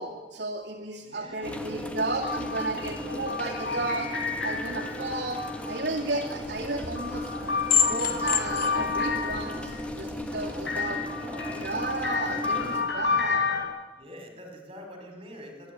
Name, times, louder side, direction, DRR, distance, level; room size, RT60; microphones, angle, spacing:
voice 1, 0.0-4.1 4.4-7.3 7.9-11.0 11.6-13.4, right 2 dB, 70° right, -2 dB, 2.3 m, -33 dB
voice 2, 1.0-1.6 10.4-11.5 14.0-15.7, equal, 30° right, 3 dB, 5.1 m, -44 dB
sound 1, 1.4-12.8, left 1 dB, 5° left, 1.6 m, -36 dB
sound 2, 2.2-6.0 6.7-9.8 10.7-13.6, left 4 dB, 80° left, 5.7 m, -31 dB
sound 3, 6.4-10.7, left 7 dB, 55° left, 1.7 m, -30 dB
25.0 x 11.0 x 9.5 m, 1.2 s
head